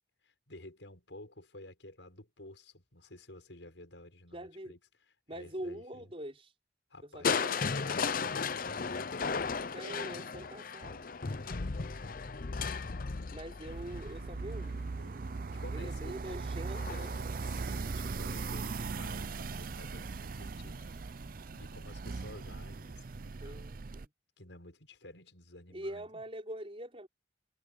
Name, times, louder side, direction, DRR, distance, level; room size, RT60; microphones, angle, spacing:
voice 1, 0.2-4.8 5.3-6.1 6.9-7.5 7.8-9.5 11.2-12.5 15.5-16.6 17.4-23.7 24.4-26.2, left 1 dB, 85° left, 6.5 m, -52 dB
voice 2, 4.3-4.8 5.3-6.5 7.0-7.6 9.7-11.1 13.3-14.8 15.7-17.2 23.4-24.1 25.7-27.1, right 1 dB, 30° right, 5.4 m, -44 dB
Crushing, 7.2-15.2 16.8-17.3 17.8-17.9, left 5 dB, 50° left, 0.7 m, -35 dB
sound 1, 13.7-24.0, right 4 dB, 50° right, 0.5 m, -39 dB
head